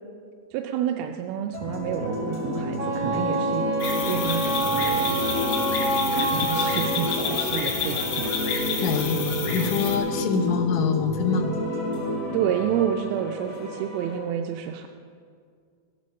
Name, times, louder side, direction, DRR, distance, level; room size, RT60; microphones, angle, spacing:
voice 1, 0.5-3.7 4.1-5.2 6.1-8.3 12.3-14.9, right 10 dB, 85° right, 4 dB, 2.5 m, -29 dB
sound 1, 1.5-14.2, left 1 dB, 30° left, 2.5 m, -31 dB
Wind instrument woodwind instrument, 2.7-7.1, right 2 dB, 40° right, 2.8 m, -27 dB
sound 2, 3.8-10.0, left 6 dB, 85° left, 3.7 m, -30 dB
voice 2, 8.8-11.5, left 5 dB, 70° left, 6 dB, 2.3 m, -25 dB
16.5 x 8.5 x 6.3 m, 2.2 s
omnidirectional pair, 4.3 m